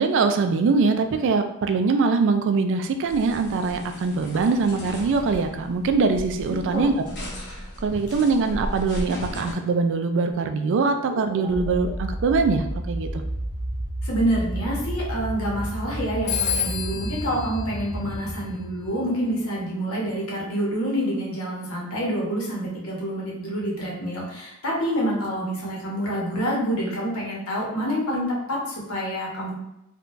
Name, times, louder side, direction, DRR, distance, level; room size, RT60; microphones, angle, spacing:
voice 1, 0.0-6.9 7.8-13.2, right 4 dB, 60° right, 7 dB, 0.3 m, -22 dB
sound 1, 3.1-9.5, equal, 55° left, 0.9 m, -36 dB
voice 2, 6.5-6.9 14.0-29.5, equal, 80° left, -3 dB, 1.0 m, -27 dB
sound 2, 10.3-19.7, right 1 dB, 10° left, 1.5 m, -32 dB
Telephone, 16.3-18.8, left 8 dB, 35° left, 0.6 m, -30 dB
3.7 x 2.2 x 2.5 m, 0.86 s
head